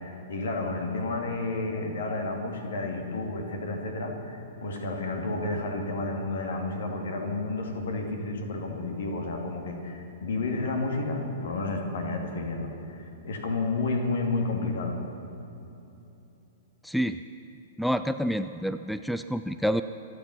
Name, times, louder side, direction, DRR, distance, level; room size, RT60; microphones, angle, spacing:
voice 1, 0.0-15.0, left 2 dB, 60° left, 3 dB, 2.5 m, -31 dB
voice 2, 16.8-17.2 17.8-19.8, equal, ahead, 11 dB, 0.4 m, -28 dB
26.0 x 8.8 x 5.8 m, 2.9 s
figure-of-eight pair, 105°, 0 cm